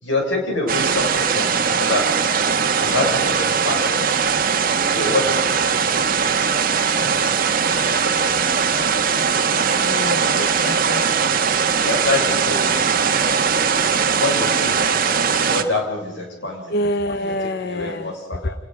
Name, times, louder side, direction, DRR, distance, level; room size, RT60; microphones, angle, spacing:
voice 1, 0.0-4.0 4.9-5.6 11.8-12.7 14.1-14.8 15.3-16.7 17.1-18.5, left 2 dB, 70° left, 1 dB, 6.5 m, -26 dB
sound 1, 0.7-15.6, right 6 dB, 45° right, 1.4 m, -20 dB
voice 2, 9.7-11.0 16.7-18.1 18.4-18.5, left 1 dB, 55° left, 10 dB, 1.0 m, -26 dB
29.5 x 19.5 x 5.0 m, 1.2 s
head